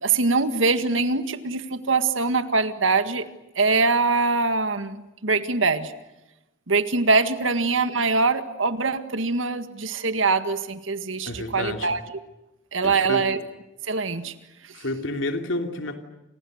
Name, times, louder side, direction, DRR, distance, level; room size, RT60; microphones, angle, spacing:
voice 1, 0.0-3.3 3.6-5.9 6.7-12.0 12.7-13.4 13.9-14.3, right 4 dB, 85° right, 10 dB, 1.9 m, -23 dB
voice 2, 11.3-11.9 12.8-13.3 14.7-16.0, left 2 dB, 80° left, 5 dB, 3.0 m, -29 dB
29.5 x 28.0 x 6.6 m, 0.97 s
head